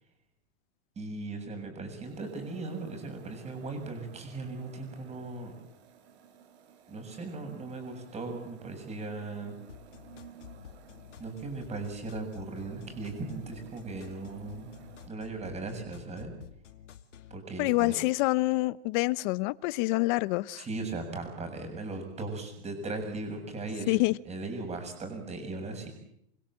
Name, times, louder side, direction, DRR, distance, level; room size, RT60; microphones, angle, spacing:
voice 1, 1.0-5.5 6.9-9.5 11.2-14.7 15.1-16.3 17.3-17.9 20.6-24.0 24.3-25.9, right 3 dB, 20° right, 7.3 m, -38 dB
sound 1, 1.9-15.1, right 8 dB, 65° right, 5.3 m, -54 dB
sound 2, 9.7-17.4, left 9 dB, 90° left, 2.6 m, -50 dB
voice 2, 17.6-20.6 23.9-24.2, left 22 dB, 45° left, 0.9 m, -27 dB
28.0 x 22.0 x 7.7 m
hypercardioid pair, 140°, 35 cm